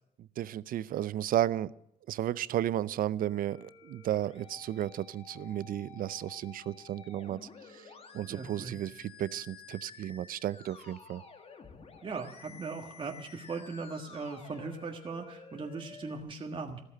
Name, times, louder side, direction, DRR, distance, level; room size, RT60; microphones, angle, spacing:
voice 1, 0.2-1.7 2.1-11.2, right 12 dB, 55° right, 19 dB, 0.6 m, -33 dB
Musical instrument, 3.2-16.2, left 5 dB, 35° left, 2.0 m, -52 dB
voice 2, 8.3-8.7 12.0-16.8, right 4 dB, 30° right, 2 dB, 1.6 m, -39 dB
14.0 x 13.5 x 6.5 m, 0.80 s
cardioid pair, 110°, 17 cm